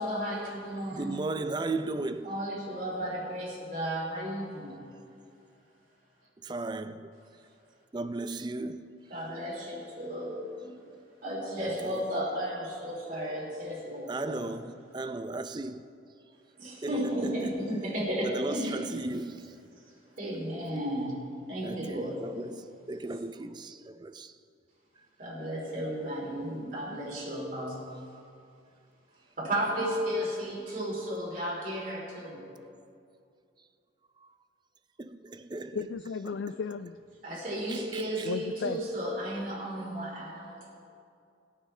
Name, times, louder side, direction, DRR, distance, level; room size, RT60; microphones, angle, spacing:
voice 1, 0.0-1.1 2.2-4.8 9.1-10.7 11.2-14.4 16.6-18.8 20.2-22.2 25.2-27.8 29.4-32.4 37.2-40.7, equal, 45° right, -4 dB, 3.2 m, -34 dB
voice 2, 0.9-2.3 6.4-7.2 7.9-8.9 11.6-12.0 14.1-15.9 16.8-17.5 18.2-19.5 21.6-24.3 35.0-35.8 36.3-36.4 37.7-38.0, right 2 dB, 25° right, 10 dB, 0.4 m, -36 dB
voice 3, 35.7-37.0 38.2-38.8, left 5 dB, 75° left, 10 dB, 0.3 m, -34 dB
20.5 x 9.9 x 3.3 m, 2.5 s
head